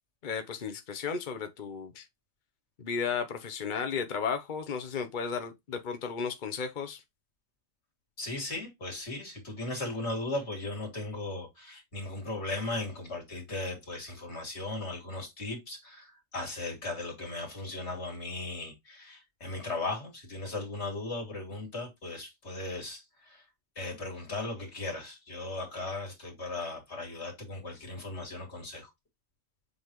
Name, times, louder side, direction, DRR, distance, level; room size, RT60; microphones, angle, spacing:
voice 1, 0.2-2.0 2.8-7.0, left 6 dB, 65° left, 0.4 m, -34 dB
voice 2, 8.2-23.4 23.8-28.9, left 2 dB, 30° left, 2.8 m, -37 dB
7.5 x 4.0 x 3.1 m
omnidirectional pair, 2.2 m